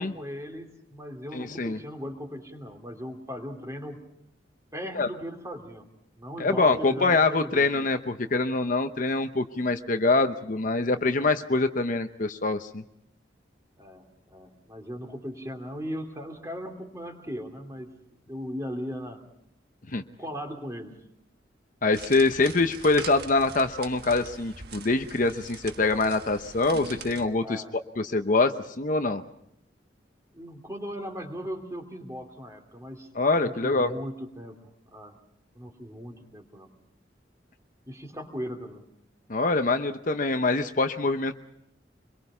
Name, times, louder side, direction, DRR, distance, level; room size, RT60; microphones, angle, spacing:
voice 1, 0.0-4.0 4.7-5.9 6.2-7.7 11.2-11.4 13.8-14.0 14.3-17.9 18.3-19.2 20.0-20.9 27.4-27.7 30.3-33.1 33.4-35.2 35.5-36.7 37.9-38.9, equal, 15° right, 4 dB, 2.8 m, -38 dB
voice 2, 1.3-1.8 4.9-5.1 6.4-12.8 19.9-20.0 21.8-27.6 28.0-29.2 33.1-33.9 39.3-41.3, left 3 dB, 45° left, 8 dB, 0.8 m, -24 dB
sound 1, 21.9-27.3, right 4 dB, 55° right, 1.5 m, -42 dB
26.0 x 22.5 x 5.6 m, 0.77 s
head